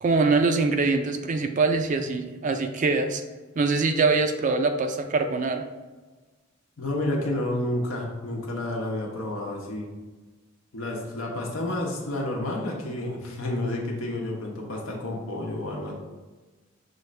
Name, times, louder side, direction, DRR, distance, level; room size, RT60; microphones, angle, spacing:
voice 1, 0.0-3.2 3.6-5.6, right 3 dB, 40° right, 7 dB, 0.3 m, -23 dB
voice 2, 6.8-9.9 10.7-15.9, left 1 dB, 80° left, -1 dB, 1.0 m, -30 dB
6.2 x 2.5 x 3.2 m, 1.3 s
head